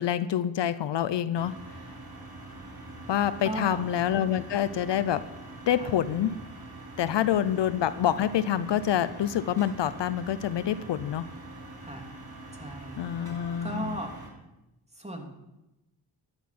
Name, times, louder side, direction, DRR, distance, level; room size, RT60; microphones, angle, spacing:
voice 1, 0.0-1.5 3.1-5.2 5.7-6.4 7.0-11.3 13.0-13.9, left 10 dB, 65° left, 14 dB, 0.8 m, -27 dB
sound 1, 1.3-14.3, right 2 dB, 40° right, 4.8 m, -44 dB
voice 2, 3.4-3.8 5.8-6.0 11.8-12.1 12.5-13.3 13.6-14.2 14.9-15.3, right 1 dB, 15° right, 2 dB, 3.3 m, -36 dB
14.0 x 10.5 x 6.1 m, 0.97 s
cardioid pair, 65°, 45 cm